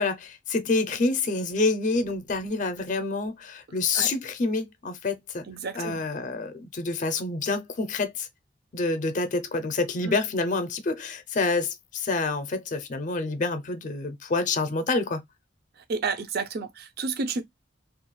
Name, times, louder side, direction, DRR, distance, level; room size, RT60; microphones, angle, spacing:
voice 1, 0.0-5.4 5.8-8.3 8.7-15.2, left 3 dB, 45° left, 0.5 m, -27 dB
voice 2, 5.5-6.0 10.0-10.2 15.8-17.4, right 4 dB, 55° right, 0.5 m, -31 dB
2.4 x 2.2 x 3.0 m
head